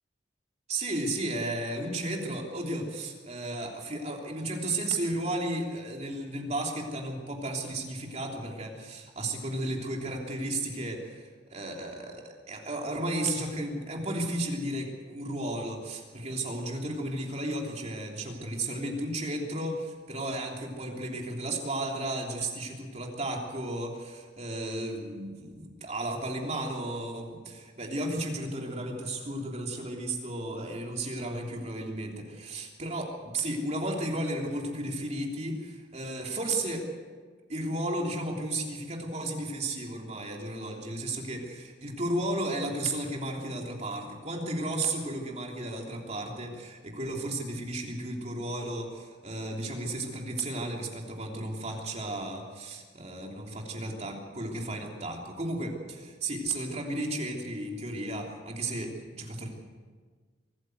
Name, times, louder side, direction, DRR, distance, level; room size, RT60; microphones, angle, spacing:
voice 1, 0.7-36.9 37.5-59.5, right 1 dB, 40° right, 0 dB, 3.3 m, -34 dB
24.0 x 14.5 x 8.0 m, 1.5 s
head